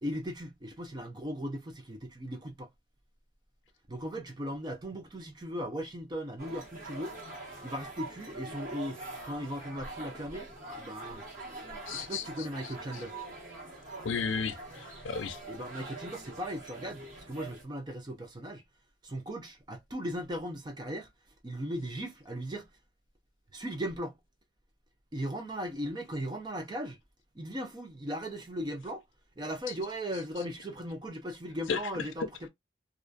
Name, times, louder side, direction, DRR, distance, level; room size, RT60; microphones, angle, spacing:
voice 1, 0.0-2.7 3.9-7.2 7.6-9.0 9.2-11.2 11.9-13.2 15.5-18.6 19.0-21.1 21.4-22.7 23.5-24.2 25.1-27.0 27.3-29.0 29.4-32.5, equal, 20° right, 0.4 m, -37 dB
sound 1, 6.4-17.6, right 2 dB, 40° right, 1.1 m, -44 dB
voice 2, 11.9-12.2 14.0-15.4 31.7-31.8, left 5 dB, 80° left, 0.5 m, -33 dB
2.4 x 2.2 x 2.5 m
head